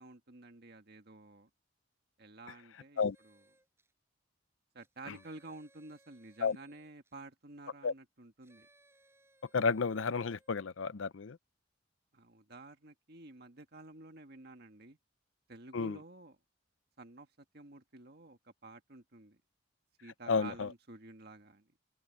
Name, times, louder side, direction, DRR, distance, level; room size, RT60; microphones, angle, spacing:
voice 1, 0.0-1.5 2.2-3.4 4.7-8.7 12.1-15.0 15.5-16.4 17.0-19.4 20.0-21.7, right 2 dB, 55° right, 1.8 m, -51 dB
sound 1, 3.0-3.9 4.8-7.2 8.4-10.6, right 2 dB, 15° right, 6.1 m, -68 dB
voice 2, 9.5-11.4 15.7-16.0 20.3-20.7, left 5 dB, 80° left, 0.6 m, -31 dB
open air
head